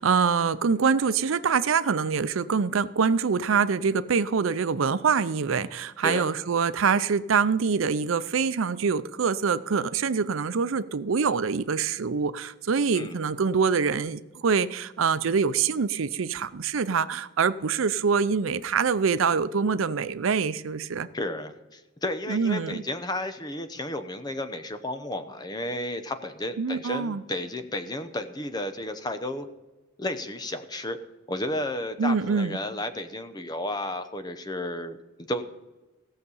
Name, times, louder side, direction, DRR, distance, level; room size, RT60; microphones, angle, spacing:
voice 1, 0.0-21.1 22.3-22.8 26.6-27.2 32.0-32.6, right 5 dB, 85° right, 0.5 m, -25 dB
voice 2, 6.0-6.3 12.9-13.2 21.1-29.5 30.0-31.0 31.3-35.4, left 1 dB, 20° left, 0.8 m, -32 dB
17.0 x 6.7 x 5.5 m
head